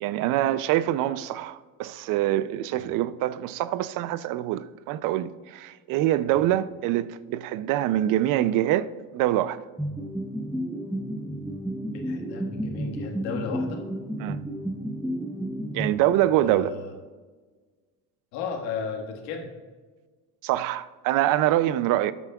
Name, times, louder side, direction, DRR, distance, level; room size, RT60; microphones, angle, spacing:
voice 1, 0.0-9.6 14.2-14.4 15.7-16.7 20.4-22.1, right 13 dB, 60° right, 0.5 m, -25 dB
sound 1, 9.8-16.5, equal, ahead, 0.5 m, -32 dB
voice 2, 11.9-13.9 16.4-16.9 18.3-19.5, left 6 dB, 85° left, 1.6 m, -34 dB
12.5 x 8.3 x 2.3 m
cardioid pair, 145°, 37 cm